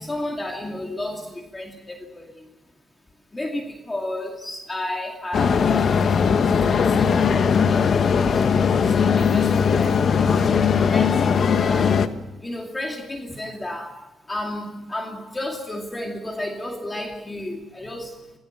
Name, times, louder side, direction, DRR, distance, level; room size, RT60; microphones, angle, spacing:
voice 1, 0.0-2.5 3.3-8.5 8.8-12.1 12.4-18.3, left 1 dB, 15° left, 2 dB, 2.4 m, -33 dB
sound 1, 5.3-12.1, left 6 dB, 50° left, 1.2 m, -19 dB
26.5 x 16.5 x 7.4 m, 1.1 s
cardioid pair, 120°, 0 cm